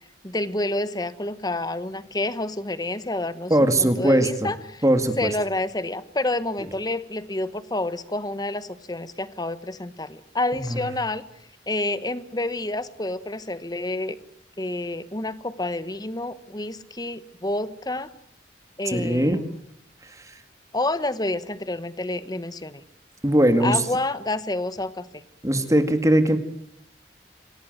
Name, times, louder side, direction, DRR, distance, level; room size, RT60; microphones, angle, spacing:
voice 1, 0.2-4.8 5.2-11.2 11.7-14.2 14.6-18.1 18.8-19.6 20.7-22.8 23.6-25.2, left 2 dB, 20° left, 14 dB, 1.2 m, -29 dB
voice 2, 3.5-4.5 4.8-5.3 10.7-10.8 18.9-19.4 23.2-23.8 25.4-26.4, right 1 dB, 20° right, 8 dB, 2.0 m, -20 dB
26.5 x 17.5 x 9.3 m, 0.72 s
head